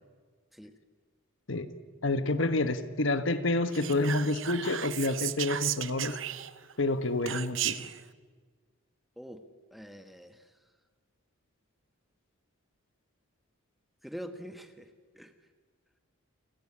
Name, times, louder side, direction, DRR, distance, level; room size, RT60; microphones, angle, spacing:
voice 1, 2.0-6.2 6.8-7.9, left 2 dB, 60° left, 10 dB, 1.3 m, -28 dB
Whispering, 3.7-6.7 7.3-8.0, right 11 dB, 60° right, 0.8 m, -35 dB
voice 2, 9.7-10.4 14.0-14.9 15.1-15.3, equal, ahead, 7 dB, 1.3 m, -44 dB
29.0 x 18.5 x 9.9 m, 1.5 s
head